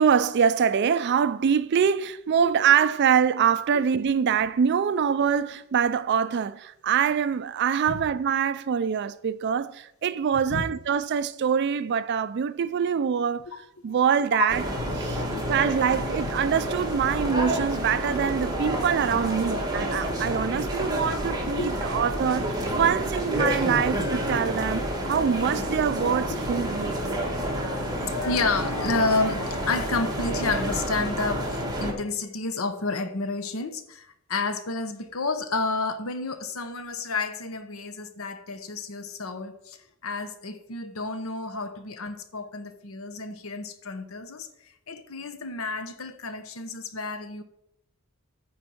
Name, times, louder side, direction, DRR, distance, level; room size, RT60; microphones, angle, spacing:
voice 1, 0.0-13.4 13.8-14.6 14.9-15.2 15.5-27.0, right 7 dB, 55° right, 0.4 m, -24 dB
sound 1, 14.5-31.9, equal, 20° right, 1.7 m, -29 dB
voice 2, 15.1-15.5 17.4-17.5 21.1-21.2 21.6-21.7 27.9-47.4, left 3 dB, 75° left, 0.9 m, -30 dB
9.5 x 4.4 x 7.7 m
head